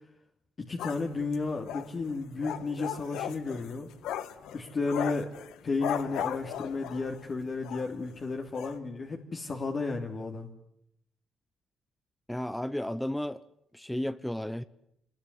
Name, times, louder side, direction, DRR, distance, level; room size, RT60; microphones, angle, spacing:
voice 1, 0.6-3.9 4.5-5.3 5.6-10.5, left 3 dB, 40° left, 2.9 m, -33 dB
sound 1, 0.8-7.2 7.6-7.9 8.2-8.3 8.5-8.8, left 10 dB, 85° left, 1.7 m, -37 dB
voice 2, 12.3-13.4 13.7-14.6, left 1 dB, 5° left, 1.0 m, -33 dB
26.5 x 21.5 x 9.7 m
cardioid pair, 90°, 0 cm